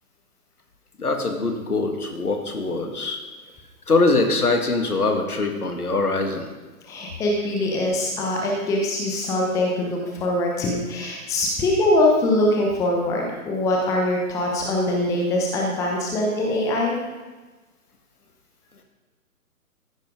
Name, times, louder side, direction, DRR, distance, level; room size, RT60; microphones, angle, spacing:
voice 1, 1.0-3.2 3.9-6.5, left 3 dB, 75° left, 4 dB, 2.0 m, -23 dB
voice 2, 6.9-17.0, left 1 dB, 5° left, -1 dB, 0.9 m, -23 dB
14.0 x 10.0 x 3.8 m, 1.2 s
figure-of-eight pair, 130°, 45 cm